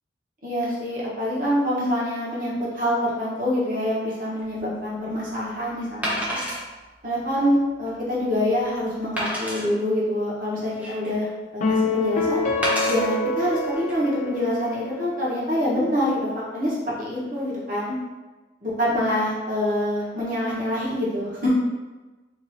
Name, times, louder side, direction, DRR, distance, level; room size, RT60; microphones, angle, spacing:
voice 1, 0.4-6.4 7.0-11.3 11.5-12.4 12.9-18.0 18.6-21.5, left 1 dB, 45° right, -7 dB, 1.1 m, -25 dB
Wood, 4.4-4.6 6.0-6.6 7.2-7.3 7.9-8.0 9.2-9.6 10.4-11.2 12.6-13.0 13.7-13.9, equal, 10° right, 0.7 m, -28 dB
sound 1, 11.6-15.1, left 3 dB, 40° left, 0.4 m, -26 dB
3.0 x 2.6 x 4.0 m, 1.2 s
head